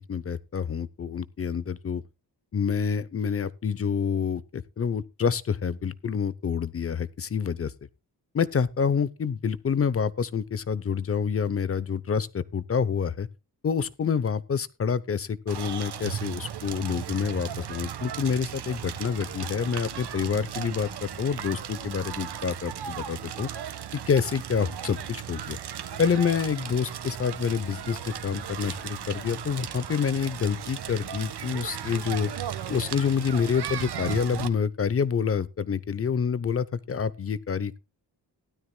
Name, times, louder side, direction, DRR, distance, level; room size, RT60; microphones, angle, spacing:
voice 1, 0.0-2.0 2.5-7.7 8.3-13.3 13.6-23.5 24.1-25.6 26.0-32.3 32.7-37.8, left 6 dB, 35° left, 0.7 m, -27 dB
Crackle, 15.5-34.5, right 9 dB, 70° right, 1.4 m, -36 dB
16.0 x 12.5 x 2.2 m
wide cardioid pair, 165°, 41 cm